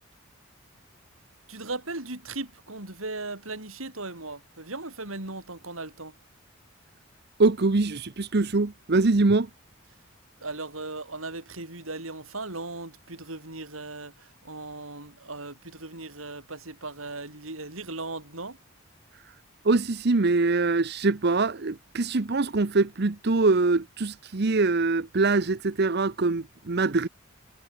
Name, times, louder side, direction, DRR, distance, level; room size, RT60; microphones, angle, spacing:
voice 1, 1.5-6.2 10.4-18.6, right 2 dB, 85° right, 5.5 m, -37 dB
voice 2, 7.4-9.5 19.1-19.3 19.6-27.1, right 3 dB, 55° right, 0.8 m, -23 dB
head